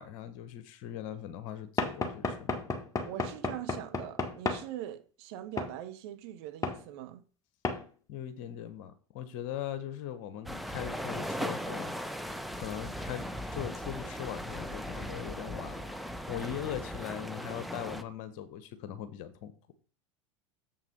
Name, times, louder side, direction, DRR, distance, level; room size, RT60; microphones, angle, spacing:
voice 1, 0.0-2.7 8.1-16.0 16.3-19.5, left 10 dB, 50° left, 1.3 m, -40 dB
Knock / Wood, 1.8-4.7 5.6-5.8 6.6-6.8 7.6-7.8, left 3 dB, 20° left, 1.5 m, -32 dB
voice 2, 3.0-7.2, right 12 dB, 55° right, 1.1 m, -42 dB
sound 1, 10.5-18.0, equal, ahead, 0.8 m, -38 dB
7.4 x 5.7 x 5.3 m
figure-of-eight pair, 80°, 16 cm